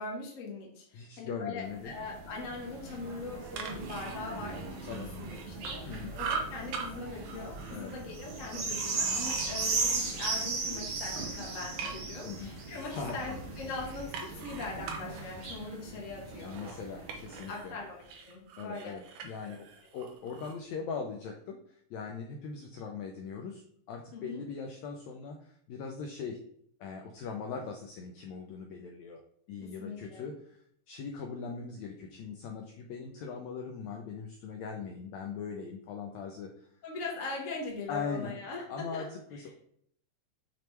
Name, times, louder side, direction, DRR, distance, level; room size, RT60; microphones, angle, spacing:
voice 1, 0.0-16.8 17.5-19.0 19.4-19.5 24.1-24.4 29.6-30.3 36.8-38.7 38.9-39.0, left 3 dB, 40° left, -2 dB, 1.2 m, -41 dB
voice 2, 0.9-1.9 4.9-5.1 5.9-6.1 7.7-7.9 12.2-12.5 12.9-13.4 16.4-17.8 18.6-19.7 19.9-26.4 26.8-29.2 29.5-30.6 30.9-36.5 37.9-38.3 38.7-39.5, left 5 dB, 80° left, 2 dB, 1.6 m, -40 dB
sound 1, 1.7-17.5 18.1-18.2, right 3 dB, 60° right, 1.4 m, -37 dB
sound 2, 3.3-5.9 6.1-6.9 7.2-10.8 11.2-12.2 12.7-17.7 18.0-20.6, right 5 dB, 85° right, 2.4 m, -43 dB
6.8 x 3.1 x 4.5 m, 0.66 s
omnidirectional pair, 3.8 m